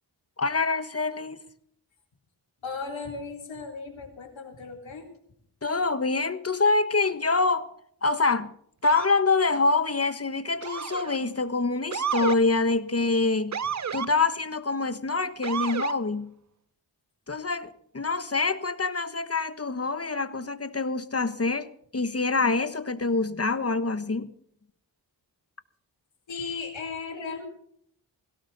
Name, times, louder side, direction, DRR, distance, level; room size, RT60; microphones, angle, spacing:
voice 1, 0.4-1.4 5.6-7.7 8.0-8.5 8.8-13.6 13.9-16.3 17.3-24.3, left 3 dB, 30° left, 1.4 m, -26 dB
voice 2, 2.6-5.1 26.3-27.4, left 4 dB, 85° left, 3.8 m, -36 dB
Motor vehicle (road) / Siren, 8.8-9.2 10.6-11.2 11.9-12.4 13.5-14.1 15.4-16.0, right 7 dB, 40° right, 0.6 m, -31 dB
17.5 x 17.0 x 4.2 m
cardioid pair, 55°, 44 cm